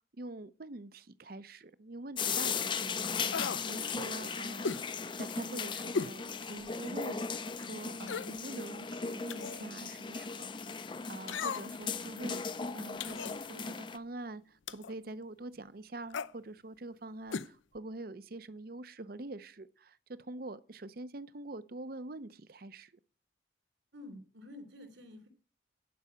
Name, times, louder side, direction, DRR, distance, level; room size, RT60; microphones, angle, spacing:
voice 1, 0.1-4.8 5.1-12.4 12.7-22.9, right 2 dB, 50° right, 0.6 m, -45 dB
sound 1, 2.2-14.0, left 5 dB, 25° left, 0.5 m, -37 dB
sound 2, 3.3-3.7 4.6-4.9 5.9-6.2 6.7-6.8 8.0-8.4 9.3-9.6 11.3-11.8 13.0-13.4 14.7-14.9 16.1-16.3 17.3-17.5 17.8-17.9, left 5 dB, 80° left, 0.6 m, -36 dB
voice 2, 23.9-25.3, left 1 dB, 65° right, 3.3 m, -50 dB
11.0 x 5.5 x 8.4 m
head